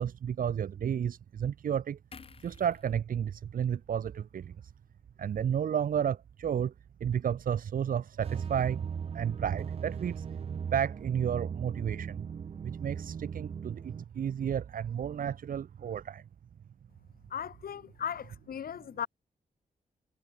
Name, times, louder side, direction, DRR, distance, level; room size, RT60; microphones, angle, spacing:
voice 1, 0.0-2.0 2.4-4.6 5.2-6.7 7.0-8.9 9.1-10.3 10.7-12.2 12.6-16.2, right 8 dB, 70° right, 1.1 m, -32 dB
sound 1, 2.1-5.5 5.8-6.0, left 5 dB, 40° left, 5.7 m, -57 dB
sound 2, 8.2-14.0, right 7 dB, 40° right, 0.5 m, -38 dB
voice 2, 17.3-19.1, left 8 dB, 85° left, 2.8 m, -37 dB
wide cardioid pair, 175°, 15 cm